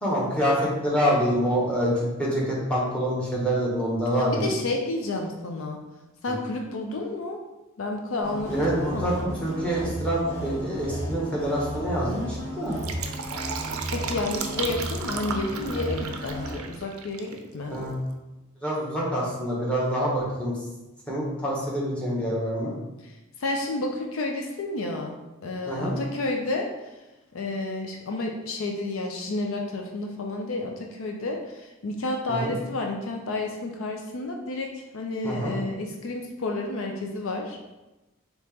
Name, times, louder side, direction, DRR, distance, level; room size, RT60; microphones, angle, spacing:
voice 1, 0.0-4.5 6.3-6.4 8.4-9.1 9.4-12.8 17.6-18.0 18.6-20.5 21.1-22.8 25.7-26.0 32.3-32.6 35.2-35.6, equal, 5° left, -5 dB, 1.2 m, -26 dB
voice 2, 4.2-5.8 6.2-7.4 7.8-9.3 13.9-17.8 23.0-23.1 23.4-25.2 25.4-26.7 27.3-34.7 34.9-37.6, left 2 dB, 70° left, 2 dB, 0.5 m, -30 dB
sound 1, 8.2-16.5, equal, 30° left, 1.3 m, -34 dB
Fill (with liquid), 12.6-17.4 17.7-17.8, right 6 dB, 90° right, 0.5 m, -35 dB
4.3 x 2.9 x 3.5 m, 1.0 s
head